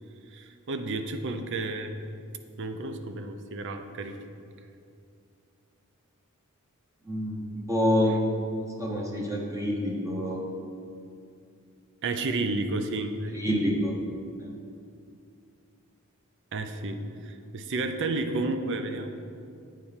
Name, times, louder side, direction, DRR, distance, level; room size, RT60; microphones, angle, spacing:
voice 1, 0.3-2.0 2.6-4.2 8.1-8.2 12.0-13.4 16.5-19.2, right 2 dB, 60° right, 8 dB, 0.6 m, -31 dB
voice 2, 7.1-8.2 8.6-10.4 13.3-13.9 14.4-14.5, equal, 15° right, -2 dB, 0.8 m, -27 dB
8.2 x 4.4 x 5.6 m, 2.4 s
head